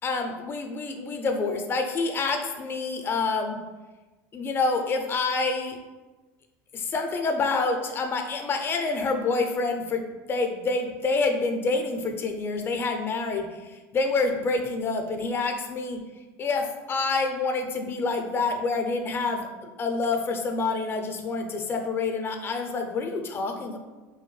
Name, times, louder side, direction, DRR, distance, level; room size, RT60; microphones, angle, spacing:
voice 1, 0.0-3.6 4.3-5.8 6.7-10.0 10.3-13.5 13.9-16.0 16.4-23.8, left 3 dB, 30° left, 5 dB, 0.4 m, -27 dB
2.7 x 2.1 x 3.1 m, 1.2 s
supercardioid pair, 105°, 8 cm